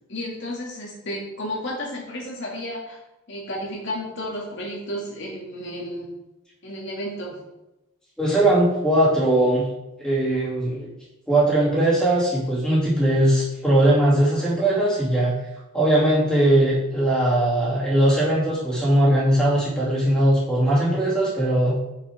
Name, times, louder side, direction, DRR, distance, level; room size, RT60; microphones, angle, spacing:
voice 1, 0.1-3.0 3.3-6.1 6.6-7.4, equal, 60° left, -3 dB, 2.3 m, -32 dB
voice 2, 8.2-9.6 10.0-10.9 11.3-15.3 15.7-21.7, right 1 dB, 5° left, -8 dB, 2.8 m, -20 dB
6.9 x 6.4 x 3.6 m, 0.95 s
head